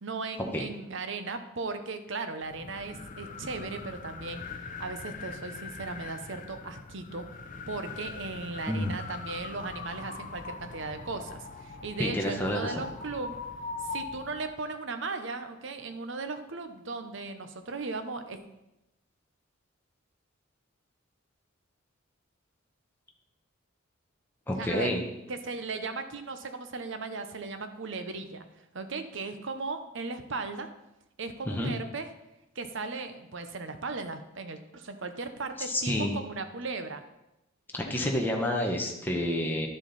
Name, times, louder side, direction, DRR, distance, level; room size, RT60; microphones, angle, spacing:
voice 1, 0.0-7.3 7.7-13.4 13.8-18.4 24.6-25.0 25.3-28.4 28.7-30.7 31.2-32.1 32.5-37.0, right 3 dB, 65° right, 8 dB, 0.9 m, -37 dB
sound 1, 2.4-14.6, left 4 dB, 40° left, 0.6 m, -42 dB
voice 2, 12.0-12.8 24.5-25.0 31.5-31.7 35.7-36.2 37.7-39.7, left 1 dB, 10° left, 0 dB, 1.1 m, -29 dB
11.0 x 7.4 x 4.1 m, 0.92 s
head